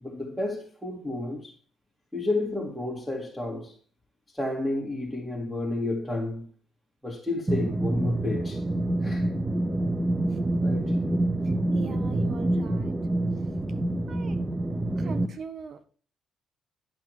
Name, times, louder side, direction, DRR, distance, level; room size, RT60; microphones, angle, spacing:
voice 1, 0.0-1.5 2.1-3.8 4.3-6.5 7.0-8.6 9.0-9.3 10.6-11.0, left 2 dB, ahead, 2.4 m, -31 dB
sound 1, 7.5-15.3, right 1 dB, 15° right, 0.9 m, -27 dB
voice 2, 11.4-12.9 14.1-14.4 14.9-15.8, right 6 dB, 50° right, 1.5 m, -41 dB
11.0 x 6.1 x 4.8 m
cardioid pair, 90°, 0 cm